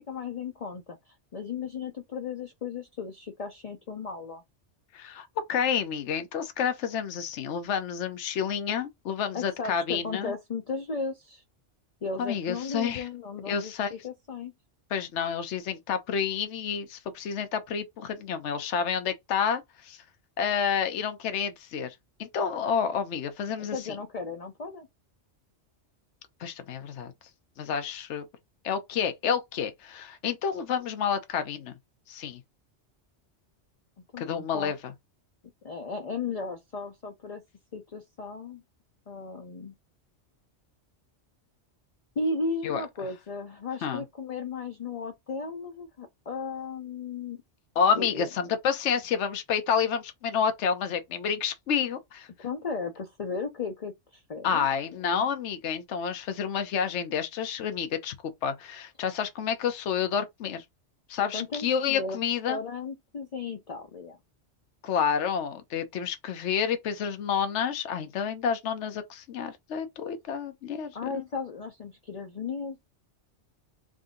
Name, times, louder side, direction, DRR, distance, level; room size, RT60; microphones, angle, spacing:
voice 1, 0.1-4.4 9.3-11.4 12.0-14.5 23.6-24.9 34.1-34.7 35.6-37.4 37.7-38.6 39.1-39.7 42.2-47.4 47.9-48.3 52.4-54.6 55.0-55.3 61.3-62.2 62.5-64.2 70.9-72.8, left 4 dB, 40° left, 0.6 m, -35 dB
voice 2, 4.9-10.3 12.2-13.1 13.5-13.9 14.9-20.0 20.4-21.9 22.2-24.0 26.4-27.1 27.6-28.2 28.6-31.7 32.1-32.4 34.2-34.8 42.6-42.8 43.8-44.0 47.8-52.3 54.4-58.1 58.4-60.6 61.1-62.6 64.8-71.3, left 7 dB, 75° left, 1.0 m, -29 dB
3.7 x 2.7 x 3.7 m
omnidirectional pair, 1.2 m